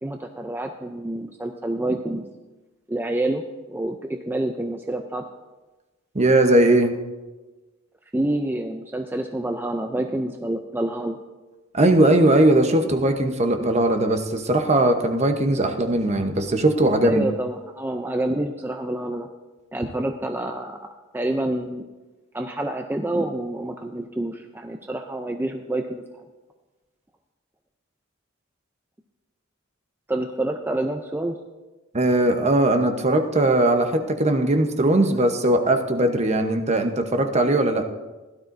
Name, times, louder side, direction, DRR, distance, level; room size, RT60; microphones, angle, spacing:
voice 1, 0.0-2.3 2.9-4.0 4.3-5.2 8.1-11.2 17.0-19.3 19.7-20.9 21.1-21.8 22.3-26.2 30.1-31.4, right 1 dB, 10° right, 4 dB, 0.5 m, -27 dB
voice 2, 6.1-7.0 11.7-17.3 31.9-37.8, right 1 dB, 35° right, 5 dB, 0.9 m, -19 dB
16.5 x 12.0 x 2.6 m, 1.2 s
head